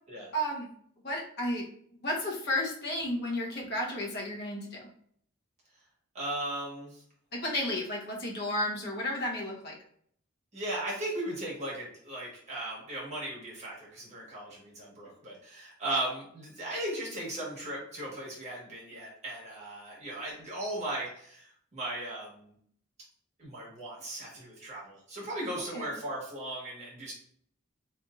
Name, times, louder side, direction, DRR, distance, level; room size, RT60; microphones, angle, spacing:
voice 1, 0.3-0.7 1.0-1.7 2.0-4.9 7.3-9.8 25.7-25.9, left 1 dB, 50° left, -2 dB, 0.9 m, -32 dB
voice 2, 6.1-7.0 10.5-22.5 23.4-27.1, right 1 dB, 35° right, -5 dB, 1.3 m, -37 dB
3.3 x 2.8 x 2.4 m, 0.63 s
head